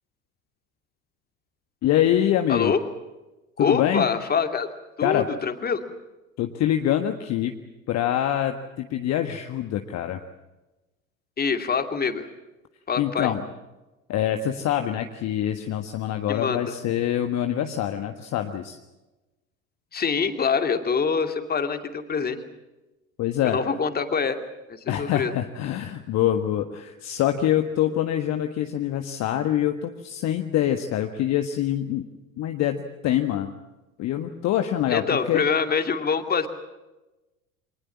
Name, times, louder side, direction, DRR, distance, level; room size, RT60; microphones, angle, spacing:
voice 1, 1.8-2.7 3.6-4.1 5.0-5.3 6.4-7.5 7.9-10.2 13.0-13.4 14.1-18.8 23.2-23.6 24.9-32.1 32.4-33.5 34.0-35.4, left 11 dB, 40° left, 6 dB, 1.6 m, -25 dB
voice 2, 3.6-4.7 5.0-5.8 11.4-12.3 12.9-13.3 16.3-16.7 19.9-22.4 23.4-24.4 25.0-25.3 34.9-36.5, left 6 dB, 25° left, 7 dB, 2.5 m, -25 dB
25.5 x 19.5 x 7.3 m, 1.0 s
figure-of-eight pair, 70°, 40 cm